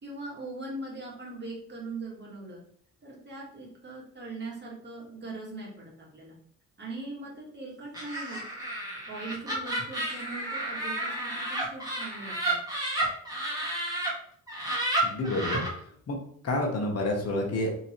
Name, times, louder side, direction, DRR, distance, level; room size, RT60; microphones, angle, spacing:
voice 1, 0.0-2.6 3.0-6.4 6.8-8.4 9.1-12.6, right 2 dB, 35° right, -3 dB, 1.5 m, -40 dB
Laughter, 7.9-14.1 14.5-15.7, right 1 dB, 15° right, 1.4 m, -32 dB
voice 2, 15.0-15.6 16.1-16.2 16.4-17.8, left 1 dB, 55° left, 1 dB, 1.0 m, -28 dB
3.6 x 2.9 x 3.0 m, 0.63 s
cardioid pair, 90°, 30 cm